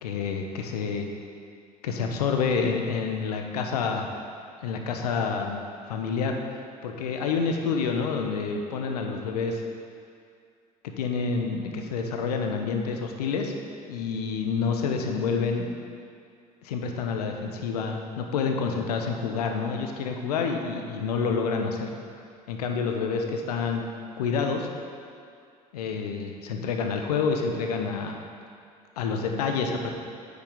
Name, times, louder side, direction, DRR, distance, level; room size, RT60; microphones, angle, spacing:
voice 1, 0.0-1.1 1.8-4.1 4.6-5.6 5.9-6.4 6.8-9.6 11.0-13.5 13.9-15.7 16.6-21.9 22.5-23.8 24.2-24.7 25.7-28.2 29.0-29.9, left 5 dB, 75° left, 3 dB, 0.9 m, -28 dB
8.3 x 6.3 x 5.0 m, 2.3 s
figure-of-eight pair, 65°, 20 cm